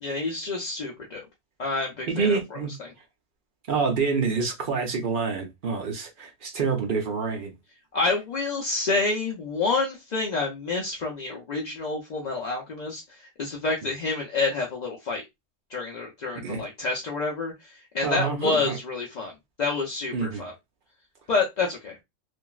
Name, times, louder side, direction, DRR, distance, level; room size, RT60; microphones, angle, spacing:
voice 1, 0.0-1.3 1.6-2.6 7.9-15.2 15.7-19.3 19.6-20.5 21.3-22.0, left 3 dB, 55° left, 0.5 m, -28 dB
voice 2, 2.1-2.7 3.7-7.5 16.4-16.6 18.0-18.8 20.1-20.4, right 5 dB, 50° right, 0.7 m, -27 dB
2.9 x 2.5 x 2.3 m
omnidirectional pair, 1.3 m